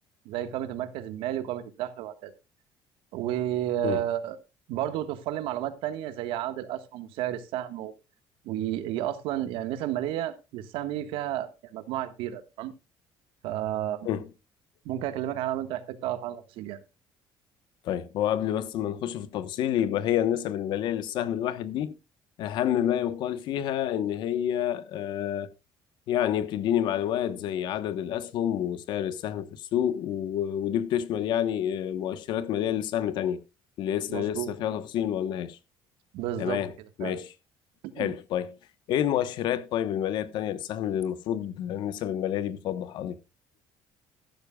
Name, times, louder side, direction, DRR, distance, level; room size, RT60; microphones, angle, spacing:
voice 1, 0.2-2.3 3.1-4.4 4.7-7.9 8.4-12.7 13.4-14.1 14.8-16.8 34.1-34.6 36.1-36.6 37.0-37.2 38.0-38.1, right 12 dB, 80° right, 1.5 m, -32 dB
voice 2, 17.8-22.0 22.4-25.5 26.1-33.4 33.8-35.6 36.4-36.7 37.0-37.3 38.0-38.6 38.9-43.2, left 10 dB, 55° left, 1.1 m, -28 dB
14.5 x 12.0 x 2.3 m
cardioid pair, 175°, 9 cm